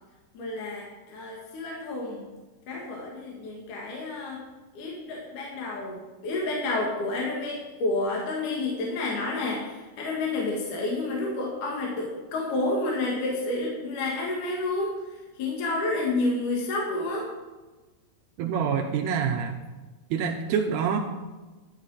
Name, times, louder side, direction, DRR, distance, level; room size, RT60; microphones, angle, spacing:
voice 1, 0.3-2.3 2.7-4.4 4.7-17.3, left 2 dB, 55° left, -2 dB, 2.7 m, -30 dB
voice 2, 18.4-19.6 20.1-21.0, right 7 dB, 85° right, 2 dB, 2.4 m, -26 dB
11.5 x 11.0 x 4.1 m, 1.2 s
omnidirectional pair, 5.5 m